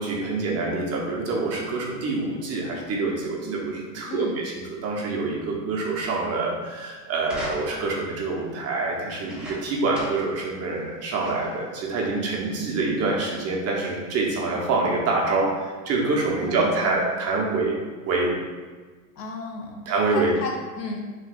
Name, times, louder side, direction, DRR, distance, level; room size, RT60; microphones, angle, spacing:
voice 1, 0.0-17.7 18.1-18.3 19.9-20.3, right 3 dB, 30° right, -2 dB, 1.0 m, -26 dB
sound 1, 7.2-8.0 9.1-10.4 10.7-10.8 11.2-11.6 12.4-12.5, equal, ahead, 1.1 m, -39 dB
voice 2, 16.3-17.0 19.2-19.8 20.1-21.0, left 3 dB, 80° left, 0 dB, 1.2 m, -34 dB
5.9 x 3.3 x 2.5 m, 1.4 s
hypercardioid pair, 110°, 49 cm